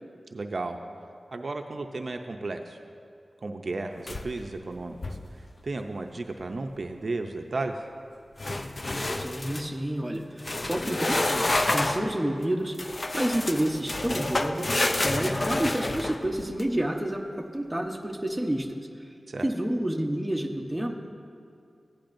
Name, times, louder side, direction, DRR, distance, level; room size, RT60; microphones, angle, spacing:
voice 1, 0.3-0.8 1.3-2.8 3.4-7.9 19.3-19.5, right 3 dB, 60° right, 5 dB, 0.5 m, -34 dB
sound 1, 4.1-4.5 4.9-5.3 8.4-9.7 10.4-12.1 12.8-16.6, left 2 dB, 40° left, 0.5 m, -29 dB
voice 2, 9.1-10.4 10.7-14.7 15.0-18.8 19.4-21.1, right 1 dB, 10° right, 2 dB, 0.9 m, -29 dB
15.5 x 10.5 x 2.6 m, 2.4 s
wide cardioid pair, 65°, 0 cm